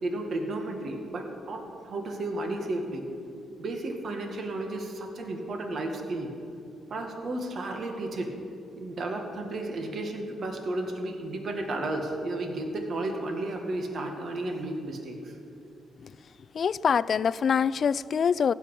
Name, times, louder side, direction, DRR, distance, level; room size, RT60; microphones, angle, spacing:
voice 1, 0.0-3.1 3.6-6.3 6.9-8.3 8.8-15.3, right 2 dB, 50° right, 3 dB, 1.9 m, -33 dB
voice 2, 16.5-18.5, left 7 dB, 50° left, 18 dB, 0.3 m, -25 dB
15.5 x 6.1 x 9.9 m, 2.6 s
cardioid pair, 90°, 0 cm